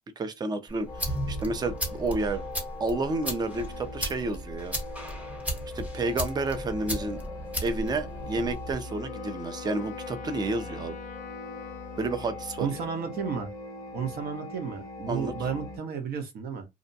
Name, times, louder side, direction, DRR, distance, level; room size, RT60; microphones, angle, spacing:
voice 1, 0.2-2.4 2.8-4.8 5.7-7.2 7.6-11.0 12.0-12.8 15.1-15.3, right 3 dB, 25° right, 0.5 m, -30 dB
sound 1, 0.7-8.7, equal, 10° right, 1.0 m, -35 dB
sound 2, 0.9-15.8, left 2 dB, 20° left, 0.8 m, -41 dB
Wind instrument woodwind instrument, 8.8-13.0, left 9 dB, 50° left, 0.4 m, -43 dB
voice 2, 12.6-13.5 13.9-16.7, right 6 dB, 65° right, 0.9 m, -32 dB
2.5 x 2.1 x 2.6 m
cardioid pair, 110°, 17 cm